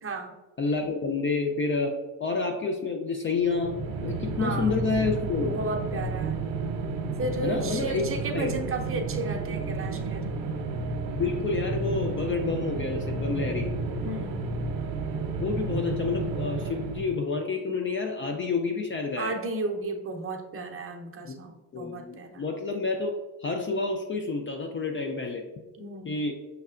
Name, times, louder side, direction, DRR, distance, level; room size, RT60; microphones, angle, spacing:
voice 1, 0.0-0.3 4.4-4.8 5.3-6.4 7.2-10.2 14.0-14.4 19.2-22.4 25.8-26.2, right 2 dB, 25° right, 2 dB, 0.7 m, -34 dB
voice 2, 0.6-5.6 7.4-8.0 8.3-8.6 11.1-13.7 15.4-19.4 21.2-21.4 21.7-25.4 26.0-26.3, left 4 dB, 25° left, 3 dB, 0.4 m, -29 dB
sound 1, 3.4-17.3, right 3 dB, 60° right, 0.9 m, -31 dB
5.5 x 3.3 x 2.4 m, 1.2 s
supercardioid pair, 80°, 50 cm